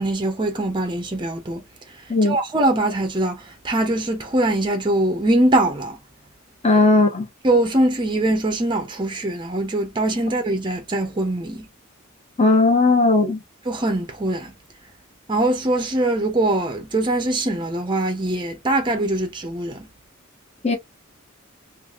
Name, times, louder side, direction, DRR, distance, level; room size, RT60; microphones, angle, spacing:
voice 1, 0.0-1.6 2.3-6.0 7.4-11.7 13.7-14.5 15.3-19.9, right 1 dB, 20° right, 0.6 m, -22 dB
voice 2, 6.6-7.3 12.4-13.4 20.6-20.8, left 3 dB, 30° left, 0.9 m, -17 dB
3.2 x 2.5 x 2.4 m
head